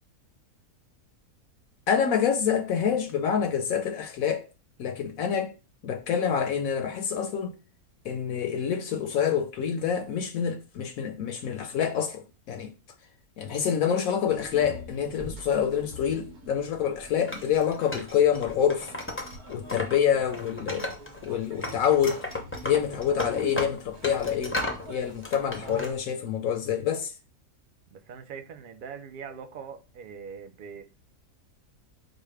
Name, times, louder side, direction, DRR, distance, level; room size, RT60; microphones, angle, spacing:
voice 1, 1.9-4.5 4.8-5.5 5.8-7.6 8.0-12.7 13.4-18.9 19.5-20.9 21.2-22.2 22.6-24.6 24.8-27.1, left 8 dB, 75° left, 1.0 m, -27 dB
sound 1, 14.3-26.0, right 1 dB, 80° right, 1.5 m, -45 dB
Wood, 17.3-20.0 20.3-21.3 21.6-24.8 25.2-25.9, left 2 dB, 15° left, 0.5 m, -34 dB
voice 2, 27.9-30.8, right 6 dB, 65° right, 0.5 m, -42 dB
5.1 x 2.1 x 4.7 m
omnidirectional pair, 1.6 m